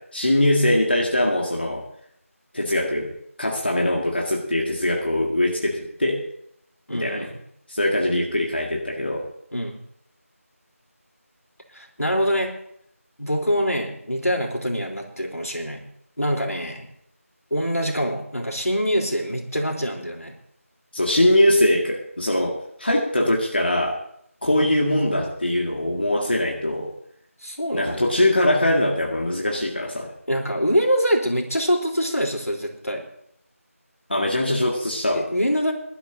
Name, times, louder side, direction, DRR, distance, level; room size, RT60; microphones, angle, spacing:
voice 1, 0.0-1.8 2.5-6.3 7.0-7.3 7.7-9.3 20.9-24.0 24.4-26.9 27.7-30.1 34.1-35.2, left 1 dB, 45° left, -1 dB, 2.1 m, -22 dB
voice 2, 6.9-7.3 9.5-9.8 11.7-12.5 13.2-15.8 16.2-16.9 17.5-20.3 27.4-28.3 30.3-33.1 35.1-35.7, equal, 85° left, 0 dB, 3.9 m, -24 dB
23.0 x 12.0 x 2.8 m, 0.71 s
figure-of-eight pair, 170°, 8 cm